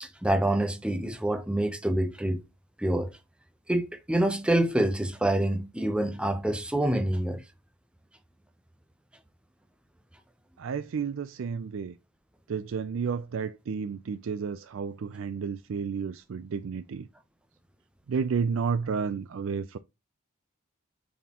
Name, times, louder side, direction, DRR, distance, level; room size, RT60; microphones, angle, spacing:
voice 1, 0.0-2.4 2.8-3.1 3.7-7.4, right 1 dB, 5° right, 0.6 m, -26 dB
voice 2, 10.6-11.9 12.5-17.1 18.1-19.8, right 6 dB, 65° right, 0.4 m, -31 dB
9.0 x 4.3 x 2.9 m
head